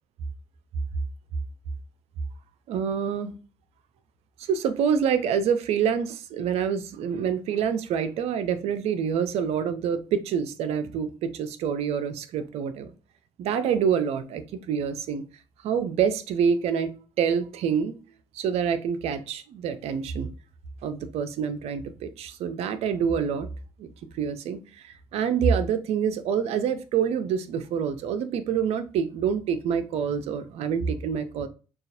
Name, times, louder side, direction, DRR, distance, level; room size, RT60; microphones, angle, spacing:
voice 1, 2.7-3.3 4.5-12.9 13.4-15.2 15.6-18.0 18.3-20.3 20.8-23.5 23.8-23.9 24.1-31.5, right 7 dB, 75° right, 0.5 m, -26 dB
6.3 x 2.4 x 2.5 m
supercardioid pair, 60°, 11 cm